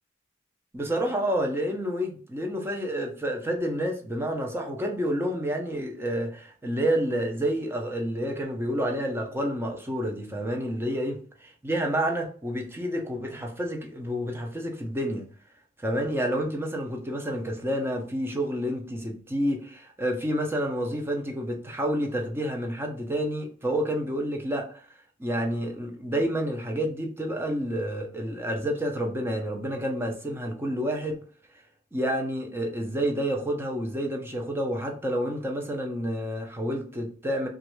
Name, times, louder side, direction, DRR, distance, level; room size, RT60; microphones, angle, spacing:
voice 1, 0.7-15.2 15.8-24.8 25.2-31.2 31.9-37.5, equal, 10° right, 0.5 m, -29 dB
3.0 x 2.4 x 3.0 m
head